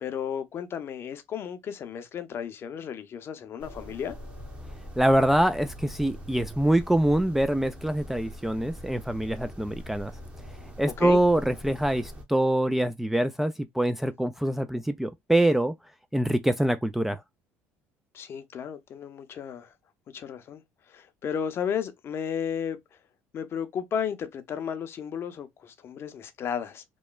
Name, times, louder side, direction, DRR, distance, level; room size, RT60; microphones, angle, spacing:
voice 1, 0.0-4.2 11.0-11.2 18.1-19.7 20.1-20.6 20.9-22.8 23.3-26.8, left 8 dB, 45° left, 0.6 m, -33 dB
sound 1, 3.6-12.2, equal, 20° right, 0.9 m, -42 dB
voice 2, 5.0-10.1 10.8-15.8 16.1-17.2, right 1 dB, 5° right, 0.3 m, -24 dB
2.9 x 2.1 x 2.2 m
supercardioid pair, 85°, 6 cm